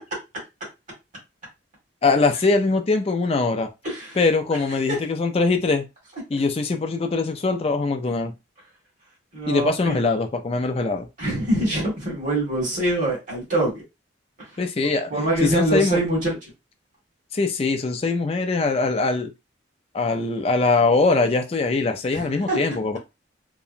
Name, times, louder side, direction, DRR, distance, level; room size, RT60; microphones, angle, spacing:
voice 1, 2.0-3.7 4.2-5.8 6.3-8.3 9.5-11.1 14.6-15.1 15.4-16.0 17.3-19.3 19.9-23.0, left 3 dB, 30° left, 0.4 m, -22 dB
voice 2, 9.3-10.0 11.2-13.8 15.1-16.3 22.1-22.6, right 1 dB, 40° right, 1.5 m, -24 dB
2.8 x 2.1 x 2.5 m
head